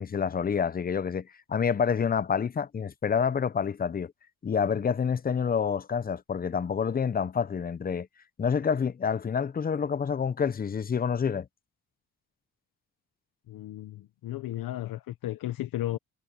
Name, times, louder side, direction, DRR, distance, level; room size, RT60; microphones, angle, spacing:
voice 1, 0.0-4.1 4.4-8.1 8.4-11.5, left 6 dB, 25° left, 0.6 m, -28 dB
voice 2, 13.5-16.0, left 14 dB, 75° left, 1.0 m, -34 dB
cardioid pair, 100°, 35 cm